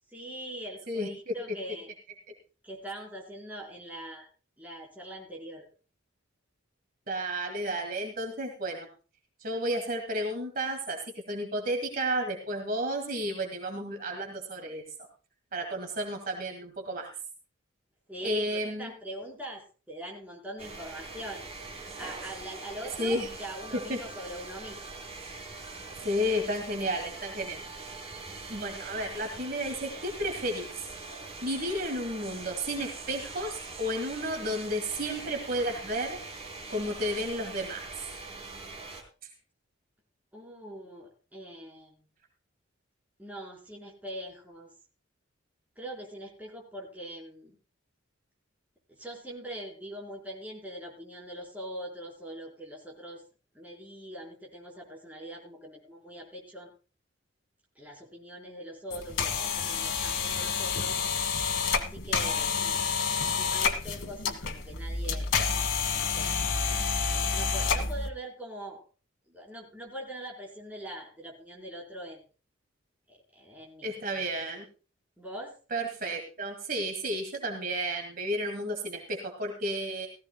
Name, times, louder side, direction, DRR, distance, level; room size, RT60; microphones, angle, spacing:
voice 1, 0.1-1.9 2.6-4.3 4.6-5.7 18.1-21.4 22.0-24.8 40.3-42.0 43.2-44.7 45.8-47.6 48.9-53.2 53.5-56.7 57.7-61.0 61.7-62.9 63.4-65.3 65.9-66.3 67.0-68.8 69.3-72.2 73.1-74.3 75.2-75.6, right 1 dB, 10° right, -1 dB, 4.2 m, -42 dB
voice 2, 0.9-1.3 7.1-8.9 9.4-11.0 11.3-14.8 15.5-17.1 18.2-18.9 23.0-23.3 23.9-24.0 26.0-27.6 28.5-30.7 31.4-36.2 36.7-37.9 73.8-74.6 75.7-80.1, equal, 45° right, 4 dB, 1.9 m, -32 dB
sound 1, 20.6-39.0, right 3 dB, 30° right, 3.1 m, -43 dB
sound 2, 58.9-68.1, left 5 dB, 85° left, 1.6 m, -29 dB
18.0 x 15.0 x 2.2 m, 0.35 s
head